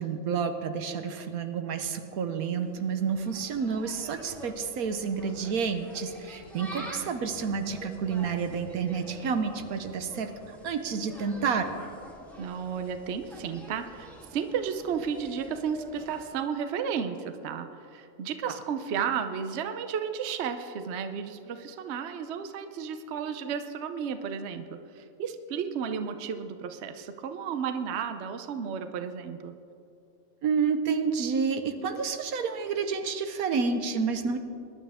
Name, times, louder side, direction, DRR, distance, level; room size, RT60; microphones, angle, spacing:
voice 1, 0.0-10.3 10.6-11.7 30.4-34.4, right 5 dB, 80° right, 8 dB, 1.3 m, -29 dB
Insect, 2.4-16.3, equal, ahead, 1.8 m, -47 dB
voice 2, 12.4-29.6, right 7 dB, 55° right, 8 dB, 0.9 m, -33 dB
21.5 x 11.0 x 3.5 m, 2.6 s
omnidirectional pair, 1.5 m